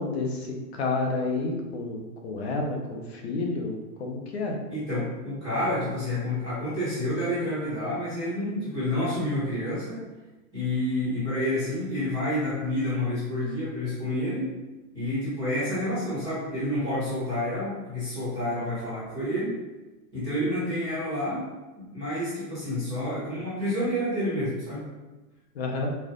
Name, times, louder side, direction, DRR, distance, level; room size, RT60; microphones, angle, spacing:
voice 1, 0.0-4.6 25.5-25.9, left 3 dB, 40° left, 1 dB, 0.7 m, -30 dB
voice 2, 4.7-10.0 10.5-14.5 14.9-19.5 20.1-21.4 21.8-24.8, left 1 dB, 5° right, -25 dB, 0.4 m, -29 dB
5.5 x 2.4 x 3.7 m, 1.2 s
supercardioid pair, 170°, 49 cm